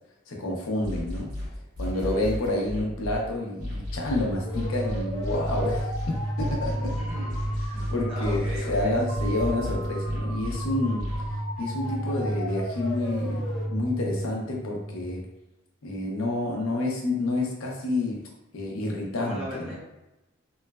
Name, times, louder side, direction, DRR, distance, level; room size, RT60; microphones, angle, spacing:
voice 1, 0.3-1.3 1.8-7.0 7.7-11.1 11.6-15.2 15.8-18.2 18.5-19.8, left 2 dB, 85° left, -1 dB, 0.6 m, -29 dB
sound 1, 0.8-3.2 3.6-10.6 11.0-11.2, left 1 dB, 80° right, 1.4 m, -33 dB
voice 2, 1.9-2.4 6.9-8.9 19.2-19.8, equal, 25° right, -8 dB, 0.7 m, -39 dB
sound 2, 3.4-15.3, right 1 dB, 25° left, 0.5 m, -32 dB
sound 3, 9.1-11.6, right 7 dB, 65° right, 0.4 m, -44 dB
3.0 x 2.1 x 2.2 m, 0.96 s
head